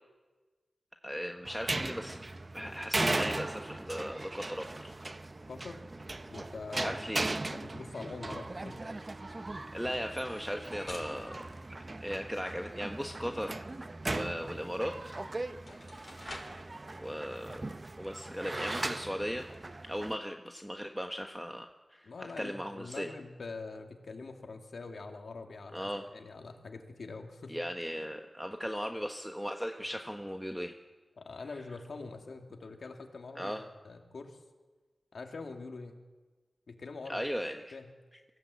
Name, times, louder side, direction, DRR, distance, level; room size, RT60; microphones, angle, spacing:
voice 1, 1.0-2.2 2.5-4.9 6.4-6.5 6.7-7.2 9.7-11.4 12.0-13.6 14.1-15.1 17.0-17.6 18.0-19.5 19.8-23.1 25.7-26.1 27.5-30.8 33.3-33.7 37.1-37.7, equal, ahead, 4 dB, 1.2 m, -37 dB
sound 1, 1.4-20.2, right 2 dB, 35° right, 0.8 m, -38 dB
voice 2, 5.5-5.8 6.3-7.0 7.5-8.8 22.0-27.6 31.2-34.4 35.1-36.0 36.7-37.2 37.7-37.9, left 3 dB, 80° left, 3 dB, 2.3 m, -44 dB
sound 2, 10.2-12.5 15.0-15.1 15.5-16.7, left 2 dB, 40° left, 5.2 m, -50 dB
24.0 x 16.0 x 8.3 m, 1.3 s
wide cardioid pair, 65°, 0 cm